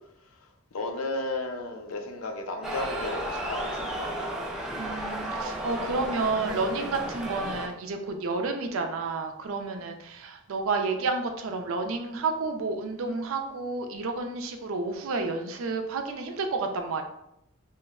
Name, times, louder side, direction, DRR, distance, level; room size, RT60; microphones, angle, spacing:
voice 1, 0.7-4.4, left 2 dB, 85° left, 5 dB, 0.5 m, -34 dB
sound 1, 2.6-7.7, right 1 dB, 5° right, 0.3 m, -33 dB
voice 2, 4.7-17.0, right 3 dB, 75° right, 5 dB, 0.5 m, -30 dB
3.0 x 2.1 x 3.5 m, 0.80 s
head